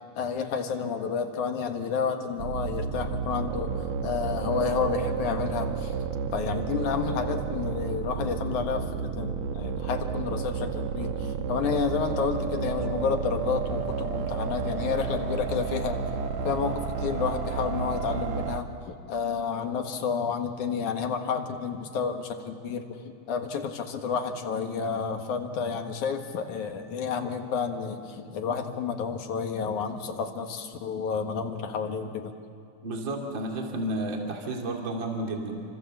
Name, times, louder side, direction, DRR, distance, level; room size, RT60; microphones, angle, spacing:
voice 1, 0.2-5.9 6.3-16.0 16.4-32.3, left 6 dB, 75° left, 5 dB, 3.0 m, -30 dB
sound 1, 2.4-18.6, right 6 dB, 70° right, 2.3 m, -31 dB
voice 2, 32.8-35.6, right 1 dB, 40° right, 1 dB, 3.1 m, -31 dB
29.5 x 25.5 x 7.4 m, 2.6 s
omnidirectional pair, 3.5 m